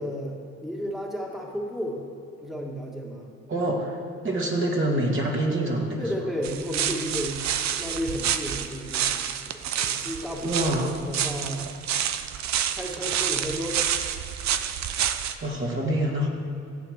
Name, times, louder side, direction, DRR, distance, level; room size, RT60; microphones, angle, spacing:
voice 1, 0.0-2.1 2.4-3.3 6.0-7.4 7.7-9.4 9.6-11.6 12.7-13.9, equal, ahead, -1 dB, 2.0 m, -33 dB
voice 2, 3.5-4.0 4.2-6.1 10.4-10.9 15.4-16.3, right 1 dB, 40° right, -1 dB, 2.3 m, -26 dB
sound 1, 6.4-15.3, right 9 dB, 65° right, 0.7 m, -28 dB
14.5 x 8.3 x 6.6 m, 2.6 s
cardioid pair, 90°, 30 cm